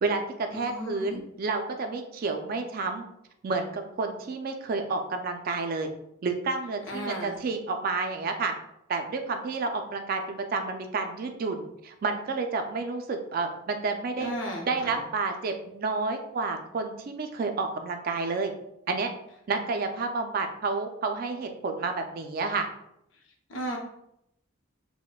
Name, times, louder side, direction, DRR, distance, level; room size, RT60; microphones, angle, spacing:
voice 1, 0.0-3.0 3.4-5.9 6.2-8.5 8.9-14.3 14.7-18.5 18.9-19.1 19.5-22.7, right 4 dB, 45° right, 5 dB, 0.3 m, -30 dB
voice 2, 0.5-1.2 6.9-7.4 14.2-15.0 23.5-23.8, equal, 70° left, 0 dB, 0.7 m, -35 dB
4.0 x 2.1 x 2.2 m, 0.79 s
head